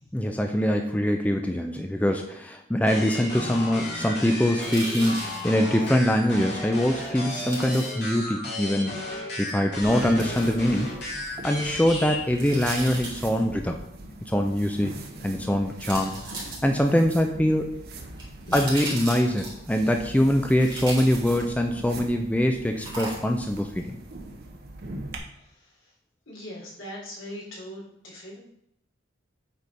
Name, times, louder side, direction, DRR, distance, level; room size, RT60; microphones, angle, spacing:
voice 1, 0.1-10.9 11.4-13.8 14.2-15.0 15.2-17.8 18.5-24.0, equal, 5° left, 4 dB, 0.4 m, -24 dB
sound 1, 2.8-12.3, left 1 dB, 50° left, 2.4 m, -34 dB
sound 2, 4.6-5.4 7.3-7.9 10.2-10.5 12.3-13.4 15.1-15.2 15.8-17.0 18.2-19.7 20.6-21.7 22.8-23.5 23.8-23.9, right 2 dB, 25° right, 3.2 m, -36 dB
sound 3, 9.8-25.2, right 1 dB, 50° right, 1.0 m, -41 dB
voice 2, 26.3-28.4, equal, 75° left, -5 dB, 3.2 m, -40 dB
8.1 x 4.2 x 5.3 m, 0.76 s
head